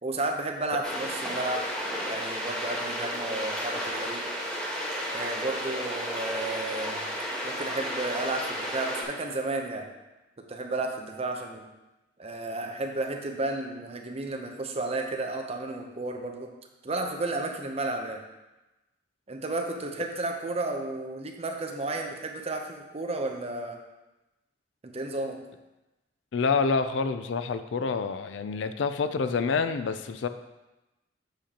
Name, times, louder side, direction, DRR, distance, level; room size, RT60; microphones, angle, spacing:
voice 1, 0.0-1.7 2.0-4.3 5.1-7.1 7.4-9.9 10.4-11.7 12.2-16.5 16.8-18.2 19.3-23.8 24.8-25.4, right 2 dB, 35° right, 3 dB, 0.7 m, -32 dB
sound 1, 0.8-9.0, equal, 5° left, 1.4 m, -33 dB
voice 2, 26.3-30.3, left 4 dB, 75° left, 10 dB, 0.4 m, -27 dB
7.6 x 6.7 x 2.9 m, 1.0 s
head